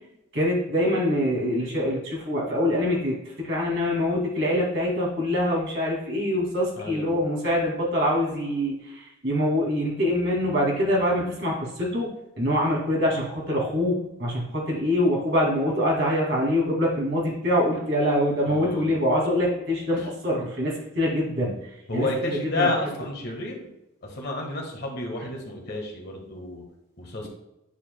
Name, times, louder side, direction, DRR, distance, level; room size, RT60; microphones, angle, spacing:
voice 1, 0.3-12.1 12.4-22.7, left 1 dB, 55° right, -3 dB, 2.3 m, -24 dB
voice 2, 6.8-7.2 18.4-18.9 20.0-20.1 21.9-23.7 24.0-26.6 27.0-27.3, left 2 dB, 50° left, 0 dB, 1.5 m, -30 dB
9.8 x 4.6 x 2.2 m, 0.93 s
head